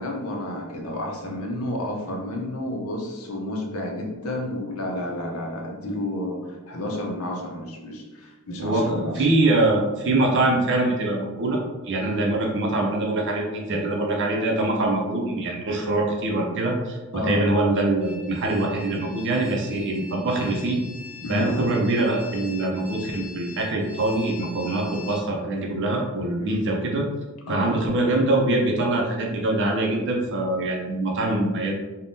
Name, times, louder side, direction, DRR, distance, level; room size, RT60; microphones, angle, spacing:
voice 1, 0.0-9.2 17.1-17.4 21.2-21.5 26.4-26.6 27.5-27.7, left 1 dB, 70° left, 0 dB, 0.6 m, -30 dB
voice 2, 8.6-11.6 11.8-20.8 21.3-27.1 27.5-31.7, right 2 dB, 55° right, 0 dB, 0.5 m, -24 dB
sound 1, 18.0-25.2, left 3 dB, 10° left, 0.6 m, -42 dB
3.4 x 2.2 x 2.6 m, 1.2 s
head